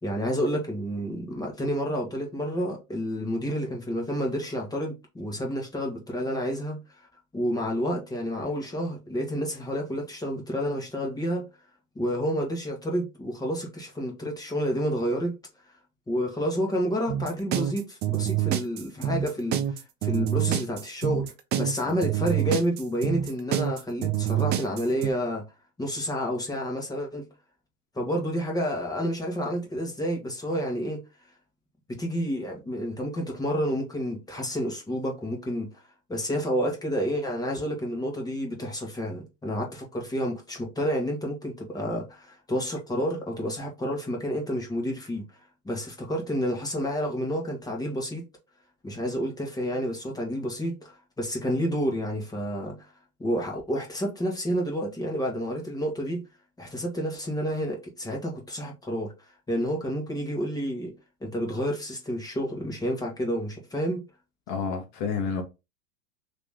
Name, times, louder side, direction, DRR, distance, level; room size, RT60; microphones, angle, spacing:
voice 1, 0.0-6.8 7.3-11.4 11.9-15.3 16.1-19.6 20.0-25.4 25.8-27.2 27.9-31.0 31.9-35.7 36.1-45.2 45.6-48.2 48.8-52.9 53.2-56.2 56.6-59.1 59.5-60.9 61.2-64.0, equal, 10° left, 1.2 m, -29 dB
sound 1, 17.1-25.1, right 11 dB, 25° right, 0.4 m, -27 dB
voice 2, 64.5-65.4, left 5 dB, 45° left, 1.1 m, -30 dB
3.0 x 2.9 x 3.7 m
hypercardioid pair, 105°, 40 cm